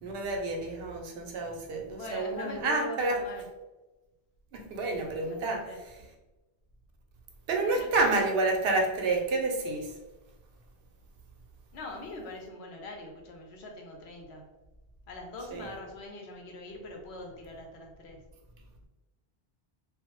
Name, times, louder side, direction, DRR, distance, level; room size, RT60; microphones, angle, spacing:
voice 1, 0.0-3.2 4.5-5.6 7.5-10.0 15.5-15.7, right 2 dB, 75° right, 2 dB, 0.8 m, -29 dB
voice 2, 1.6-3.4 5.1-5.8 7.6-7.9 11.7-14.5 15.1-18.2, left 1 dB, 85° left, 1 dB, 0.9 m, -43 dB
2.2 x 2.0 x 2.9 m, 1.1 s
omnidirectional pair, 1.1 m